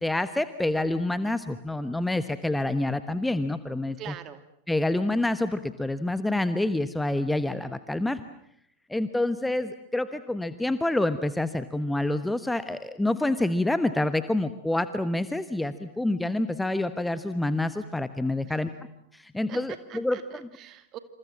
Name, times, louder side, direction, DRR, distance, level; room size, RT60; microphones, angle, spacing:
voice 1, 0.0-4.0 4.7-8.2 8.9-18.7 19.1-20.2, left 1 dB, 5° left, 12 dB, 1.2 m, -27 dB
voice 2, 4.0-4.4 18.4-18.6 19.5-21.0, right 11 dB, 35° right, 10 dB, 2.4 m, -43 dB
28.0 x 28.0 x 7.4 m, 0.69 s
figure-of-eight pair, 90°, 0 cm